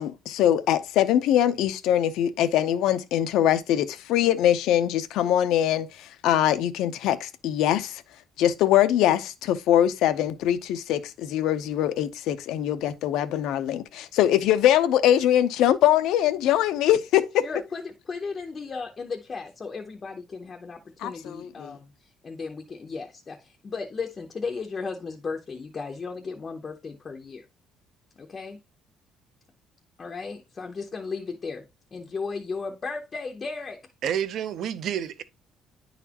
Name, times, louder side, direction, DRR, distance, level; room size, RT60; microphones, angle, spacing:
voice 1, 0.0-8.0 8.4-17.4 21.0-21.8, left 11 dB, 75° left, 0.6 m, -23 dB
voice 2, 17.4-21.9 22.2-27.4 28.2-28.6 30.0-31.7 31.9-33.8, left 4 dB, 25° left, 0.6 m, -35 dB
voice 3, 34.0-35.2, right 9 dB, 55° right, 0.6 m, -29 dB
10.0 x 4.1 x 2.8 m
cardioid pair, 175°, 0 cm